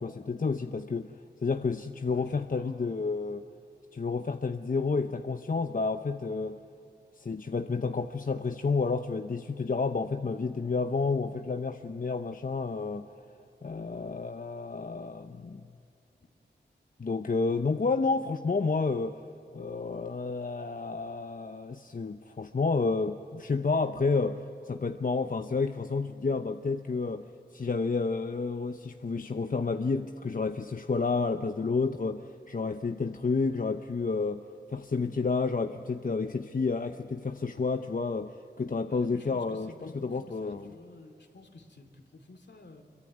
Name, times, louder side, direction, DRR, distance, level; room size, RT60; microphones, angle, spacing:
voice 1, 0.0-1.1 1.4-3.4 3.9-6.6 7.2-13.1 13.6-15.6 17.0-19.2 19.5-34.4 34.7-40.7, left 4 dB, 45° left, 7 dB, 0.8 m, -30 dB
voice 2, 2.1-2.9 38.9-42.8, left 2 dB, 70° left, 6 dB, 2.5 m, -52 dB
25.5 x 23.5 x 9.5 m, 2.7 s
wide cardioid pair, 60°, 19 cm